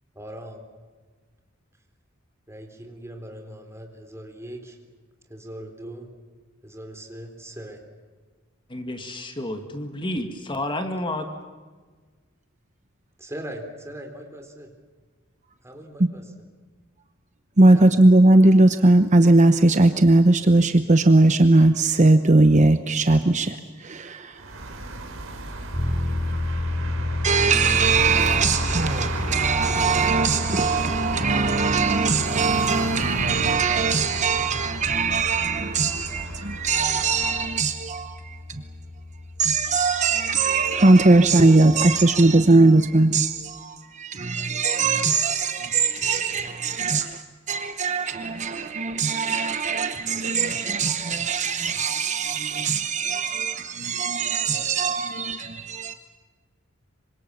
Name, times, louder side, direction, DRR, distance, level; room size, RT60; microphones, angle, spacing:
voice 1, 0.2-0.7 2.5-4.8 5.3-6.1 6.6-7.8 13.2-14.7 15.6-16.2 17.7-17.8, right 1 dB, 15° right, 4.0 m, -39 dB
voice 2, 8.7-11.3, left 1 dB, 25° left, 2.2 m, -30 dB
voice 3, 17.6-24.5 27.2-38.4 39.4-55.9, right 3 dB, 35° right, 0.9 m, -20 dB
sound 1, 24.3-37.6, right 2 dB, 85° right, 4.0 m, -33 dB
sound 2, 25.7-42.1, left 2 dB, 10° left, 3.4 m, -32 dB
26.5 x 25.0 x 7.2 m
head